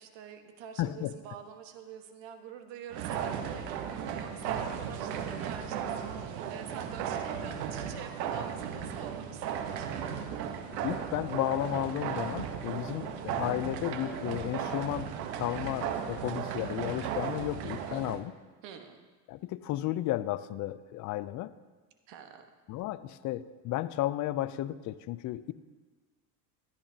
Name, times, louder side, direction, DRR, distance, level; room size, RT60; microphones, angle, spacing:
voice 1, 0.0-9.9 17.6-18.1 18.6-19.1 22.1-22.5, right 8 dB, 65° right, 6 dB, 1.3 m, -46 dB
voice 2, 0.8-1.1 10.8-18.3 19.3-21.5 22.7-25.5, left 14 dB, 40° left, 15 dB, 0.4 m, -33 dB
sound 1, 2.9-18.2, right 8 dB, 85° right, 1.0 m, -36 dB
14.0 x 10.0 x 2.7 m, 1.4 s
supercardioid pair, 100°, 49 cm